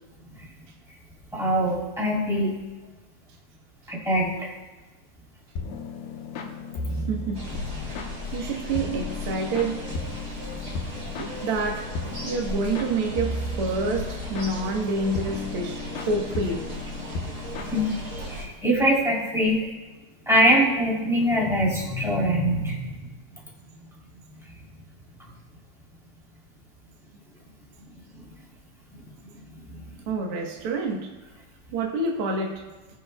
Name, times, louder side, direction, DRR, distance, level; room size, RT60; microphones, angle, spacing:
voice 1, 1.3-2.5 3.9-4.5 6.8-7.1 17.7-17.9 18.2-19.6 20.3-22.9 28.9-29.0, equal, ahead, -5 dB, 2.2 m, -23 dB
sound 1, 5.6-18.4, left 3 dB, 75° left, 2.7 m, -35 dB
voice 2, 6.9-7.4 8.3-9.8 11.2-11.9 12.2-16.6 30.1-31.1 31.7-32.6, right 3 dB, 85° right, 0 dB, 1.2 m, -28 dB
sound 2, 7.3-18.5, equal, 25° right, 2.1 m, -36 dB
19.5 x 7.5 x 2.3 m, 1.2 s
omnidirectional pair, 4.4 m